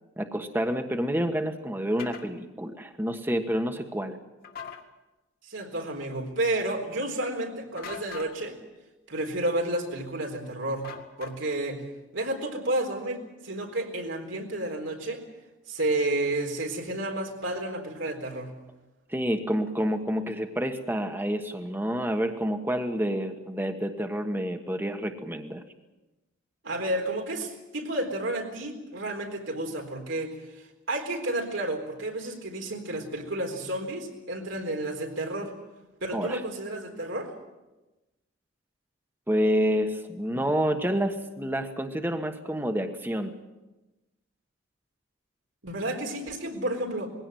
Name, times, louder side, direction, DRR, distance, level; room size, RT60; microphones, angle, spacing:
voice 1, 0.2-4.2 19.1-25.6 36.1-36.4 39.3-43.3, equal, 10° right, 6 dB, 1.3 m, -28 dB
sound 1, 2.0-2.3 4.4-4.8 7.8-8.3 10.8-11.6, left 6 dB, 50° left, 2.1 m, -41 dB
voice 2, 5.4-8.6 9.1-10.9 11.2-11.8 12.1-15.2 15.7-18.6 26.6-35.5 36.0-37.3 45.6-47.1, right 1 dB, 80° right, 2 dB, 4.1 m, -31 dB
21.0 x 17.0 x 9.2 m, 1.1 s
head